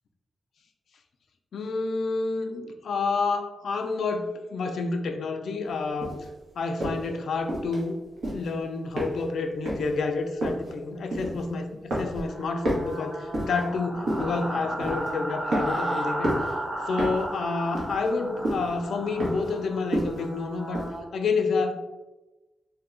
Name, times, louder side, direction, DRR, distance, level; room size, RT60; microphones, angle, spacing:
voice 1, 1.5-6.2 6.6-8.0 8.3-16.5 16.9-20.9 21.1-21.7, left 4 dB, 75° left, 5 dB, 0.3 m, -29 dB
sound 1, 6.0-6.3 6.8-7.1 7.5-7.8 8.2-8.5 9.0-9.4 9.7-9.9 10.4-10.7 11.1-11.6 11.9-12.3 12.6-13.6 14.1-14.4 14.8-15.1 15.5-15.9 16.2-16.5 17.0-17.3 17.7-18.2 18.4-18.7 19.2-19.5 19.9-20.3 20.7-20.9, right 1 dB, 70° right, 1.0 m, -29 dB
sound 2, 12.2-21.0, right 1 dB, 15° right, 0.8 m, -34 dB
2.7 x 2.2 x 3.7 m, 1.1 s
wide cardioid pair, 160°, 0 cm